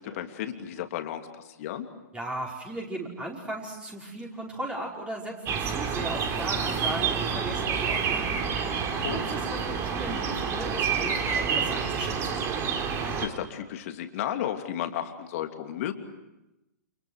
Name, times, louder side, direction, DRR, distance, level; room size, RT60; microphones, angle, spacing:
voice 1, 0.0-1.9 9.0-9.2 13.2-15.9, left 11 dB, 50° left, 5 dB, 2.9 m, -33 dB
voice 2, 2.1-8.3 9.1-12.4, right 1 dB, 10° right, -2 dB, 5.3 m, -37 dB
sound 1, 5.5-13.3, right 6 dB, 25° right, 3.5 m, -28 dB
29.5 x 28.5 x 6.5 m, 0.95 s
figure-of-eight pair, 115°, 10 cm